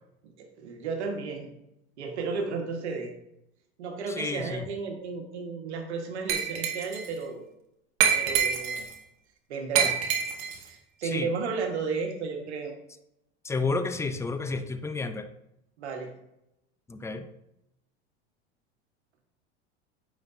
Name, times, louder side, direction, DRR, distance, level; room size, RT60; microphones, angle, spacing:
voice 1, 0.4-1.5 2.0-3.1 3.8-7.5 8.1-8.8 9.5-10.0 10.6-12.7 15.8-16.1, right 4 dB, 80° right, 3 dB, 1.5 m, -33 dB
voice 2, 4.1-4.7 11.0-11.3 13.4-15.3 16.9-17.3, left 3 dB, 10° left, 9 dB, 0.4 m, -31 dB
Glass, 6.3-7.1 8.0-8.9 9.8-10.6, right 7 dB, 65° right, 1.3 m, -26 dB
8.7 x 5.2 x 2.7 m, 0.84 s
hypercardioid pair, 90°, 33 cm